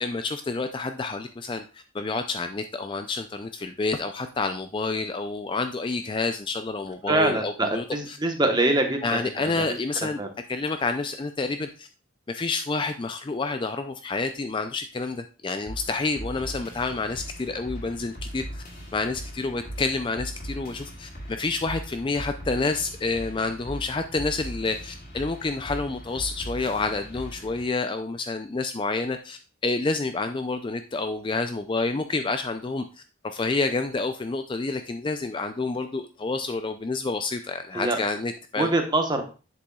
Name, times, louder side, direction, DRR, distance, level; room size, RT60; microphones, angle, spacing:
voice 1, 0.0-8.2 9.0-10.2 10.5-11.9 12.3-18.6 18.9-32.8 33.2-38.7, left 3 dB, 25° left, 7 dB, 0.3 m, -29 dB
voice 2, 7.1-9.2 9.6-9.7 10.2-10.3 37.7-38.0 38.6-39.2, right 2 dB, 20° right, 4 dB, 1.0 m, -24 dB
sound 1, 15.7-27.7, equal, 45° left, 2.4 m, -39 dB
7.7 x 6.8 x 2.3 m, 0.34 s
head